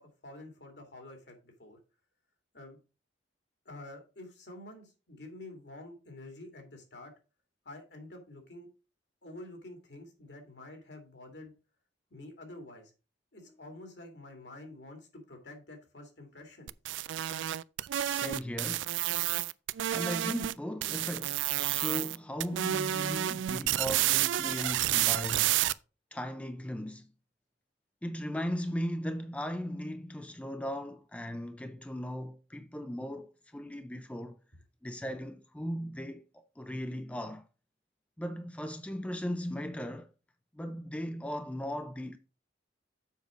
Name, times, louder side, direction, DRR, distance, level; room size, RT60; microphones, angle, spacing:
voice 1, 0.0-1.8 2.5-2.8 3.6-7.1 7.6-8.7 9.2-11.5 12.1-12.9 13.3-16.7, left 2 dB, 65° left, 2.5 m, -48 dB
sound 1, 16.7-20.5 20.8-22.2 22.4-25.7, right 13 dB, 85° right, 0.3 m, -30 dB
voice 2, 18.1-18.9 19.9-25.6 26.1-27.1 28.0-34.4 34.8-37.4 38.2-40.1 40.5-42.2, equal, 5° left, 0.4 m, -37 dB
7.2 x 5.3 x 5.0 m
head